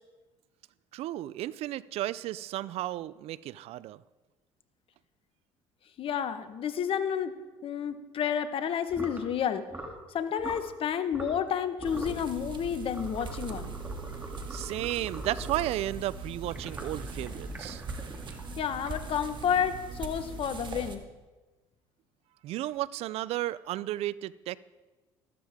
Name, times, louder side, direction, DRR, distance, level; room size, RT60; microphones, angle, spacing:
voice 1, 0.9-4.0 14.5-17.8 22.4-24.6, right 14 dB, 60° right, 20 dB, 0.4 m, -33 dB
voice 2, 6.0-9.7 10.1-13.7 18.6-21.0, left 8 dB, 50° left, 11 dB, 1.1 m, -30 dB
sound 1, 8.9-9.2 9.7-10.0 10.4-10.7 11.1-11.5 11.8-12.2 12.9-15.8 16.4-19.2, right 1 dB, 15° right, 2.8 m, -43 dB
sound 2, 11.8-21.0, right 4 dB, 45° right, 1.6 m, -40 dB
14.0 x 12.5 x 3.6 m, 1.2 s
hypercardioid pair, 70°, 12 cm